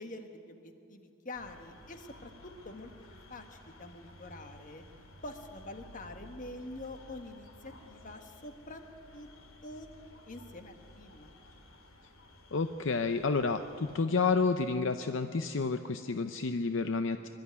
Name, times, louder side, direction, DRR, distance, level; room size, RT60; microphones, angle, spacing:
voice 1, 0.0-2.9 3.3-4.8 5.2-8.8 9.1-9.3 9.6-9.9 10.3-11.3, left 2 dB, 40° left, 6 dB, 1.3 m, -46 dB
sound 1, 1.3-14.0, left 1 dB, 80° left, 2.3 m, -55 dB
voice 2, 12.5-17.3, left 4 dB, 60° left, 8 dB, 0.6 m, -30 dB
23.5 x 12.0 x 9.5 m, 2.6 s
head